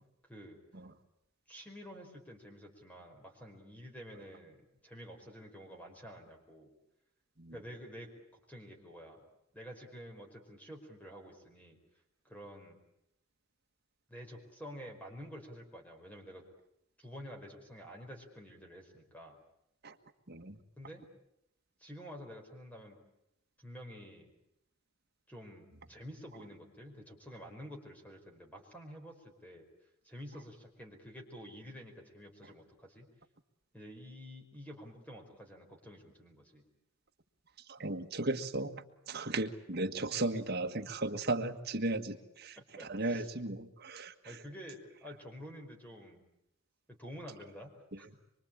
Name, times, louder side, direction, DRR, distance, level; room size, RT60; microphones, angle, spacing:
voice 1, 0.2-0.6 1.5-6.7 7.5-9.2 9.5-11.8 12.2-12.8 14.1-16.4 17.0-19.4 20.8-21.0 21.8-23.0 23.6-24.3 25.3-29.7 30.0-33.1 33.7-36.6 42.6-43.3 44.2-46.3 46.9-48.1, equal, 5° left, 3 dB, 5.0 m, -49 dB
voice 2, 20.3-20.6 37.7-38.7 39.1-44.4 47.9-48.0, right 2 dB, 50° right, 6 dB, 1.6 m, -36 dB
25.0 x 24.5 x 8.9 m, 0.81 s
head